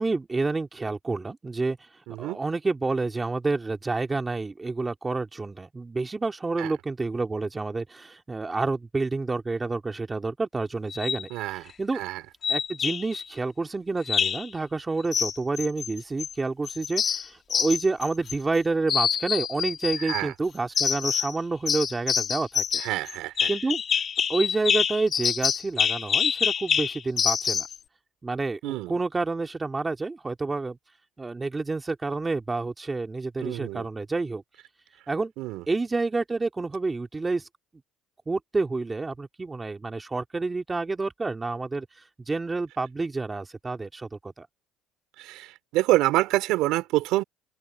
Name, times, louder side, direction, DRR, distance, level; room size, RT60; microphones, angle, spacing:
voice 1, 0.0-1.8 2.2-12.0 12.5-22.8 23.5-23.8 24.3-27.7 28.2-30.8 31.2-34.4 35.1-35.3 35.7-37.5 38.3-41.9 42.3-44.5, right 3 dB, 15° right, 2.6 m, -29 dB
voice 2, 2.1-2.4 6.6-6.7 11.3-11.6 11.9-12.2 20.0-20.3 22.8-23.5 28.6-28.9 33.4-33.9 35.4-35.6 45.2-47.2, right 17 dB, 75° right, 3.7 m, -27 dB
sound 1, 10.9-11.2 12.4-13.2 14.0-14.5 15.1-16.3 16.6-18.6 18.9-20.2 20.7-21.4 21.7-27.8, left 7 dB, 40° left, 3.1 m, -26 dB
open air
cardioid pair, 115°, 0 cm